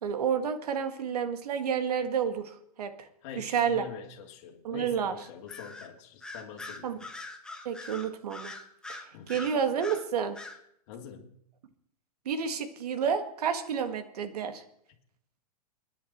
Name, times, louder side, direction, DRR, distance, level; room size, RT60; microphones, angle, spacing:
voice 1, 0.0-3.1 3.4-3.8 4.6-5.1 6.8-7.0 7.7-8.5 8.9-10.4 12.3-14.6, right 7 dB, 80° right, 9 dB, 1.9 m, -30 dB
voice 2, 3.2-7.1 9.1-9.5 10.9-11.4, left 8 dB, 45° left, 1 dB, 2.8 m, -45 dB
Bird vocalization bird call bird song, 5.5-5.9 6.2-10.0 10.3-10.6, left 2 dB, 5° left, 1.2 m, -42 dB
29.0 x 10.0 x 4.4 m, 0.72 s
supercardioid pair, 150°, 20 cm